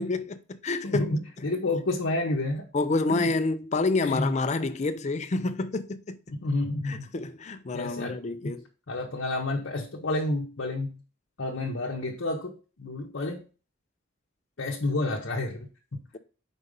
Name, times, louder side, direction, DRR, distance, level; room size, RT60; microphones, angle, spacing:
voice 1, 0.0-1.0 2.7-6.2 6.8-8.6, left 3 dB, 35° left, 0.5 m, -28 dB
voice 2, 0.8-2.7 3.1-3.3 4.0-4.3 6.3-7.1 7.7-8.5 8.9-11.0 11.4-13.5 14.6-16.0, left 2 dB, 70° left, 0.9 m, -30 dB
5.1 x 4.0 x 5.2 m
head